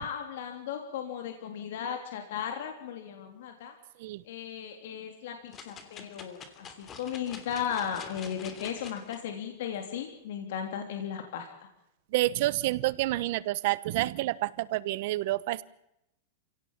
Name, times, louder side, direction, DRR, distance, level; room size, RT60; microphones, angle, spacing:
voice 1, 0.0-3.7 4.2-11.5, left 8 dB, 70° left, 4 dB, 3.2 m, -36 dB
sound 1, 5.5-9.2 9.7-9.8, left 6 dB, 25° left, 3.0 m, -46 dB
voice 2, 12.1-15.6, right 17 dB, 55° right, 18 dB, 1.0 m, -28 dB
28.5 x 17.0 x 7.4 m, 0.83 s
supercardioid pair, 155°, 0 cm